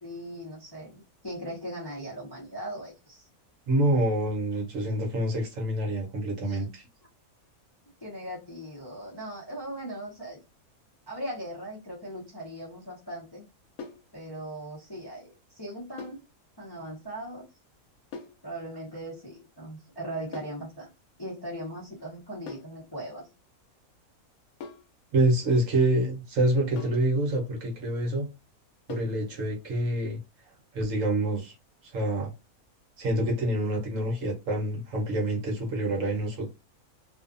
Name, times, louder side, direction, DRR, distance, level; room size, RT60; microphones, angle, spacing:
voice 1, 0.0-3.3 6.4-6.6 8.0-10.4 11.1-13.5 14.1-16.2 16.6-17.5 18.4-20.9 21.2-23.3, right 1 dB, 25° left, 0.6 m, -39 dB
voice 2, 3.7-6.9 25.1-28.3 28.9-30.2 30.7-31.5 31.8-32.3 33.0-36.5, right 1 dB, 65° right, 1.1 m, -27 dB
sound 1, 13.8-14.1 16.0-16.3 18.1-18.4 20.3-20.6 22.5-22.8 24.6-24.9 26.8-27.1 28.9-29.2, left 4 dB, 75° left, 1.0 m, -42 dB
2.6 x 2.3 x 2.5 m
omnidirectional pair, 1.6 m